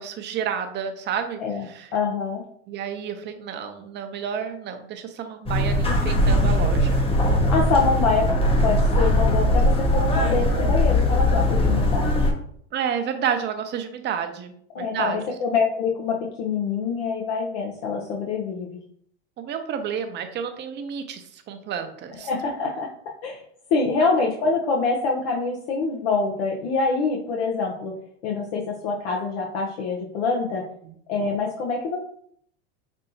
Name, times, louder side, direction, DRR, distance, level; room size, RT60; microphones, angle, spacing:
voice 1, 0.0-1.9 2.7-7.0 12.7-15.2 19.4-22.3 24.0-24.1 30.8-30.9, right 7 dB, 30° right, 7 dB, 0.6 m, -30 dB
voice 2, 1.9-2.4 7.5-8.2 8.6-12.3 14.7-18.8 22.3-22.9 23.2-23.4 23.7-27.9 28.2-30.6 31.1-32.0, left 4 dB, 70° left, -1 dB, 0.8 m, -25 dB
sound 1, 5.5-12.3, left 1 dB, 15° left, 0.7 m, -20 dB
5.3 x 2.7 x 2.8 m, 0.65 s
supercardioid pair, 115°, 34 cm